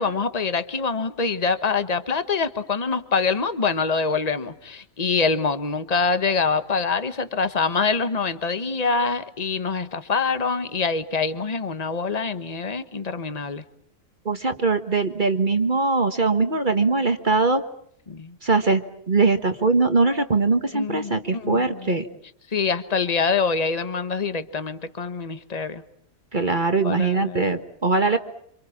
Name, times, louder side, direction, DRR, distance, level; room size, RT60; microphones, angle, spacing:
voice 1, 0.0-13.6 18.1-18.4 20.7-22.0 22.5-25.8 26.8-27.4, left 4 dB, 30° left, 10 dB, 1.4 m, -25 dB
voice 2, 14.2-17.6 18.4-22.1 26.3-28.2, right 3 dB, 35° right, 7 dB, 1.5 m, -21 dB
27.5 x 27.0 x 7.3 m, 0.66 s
omnidirectional pair, 1.4 m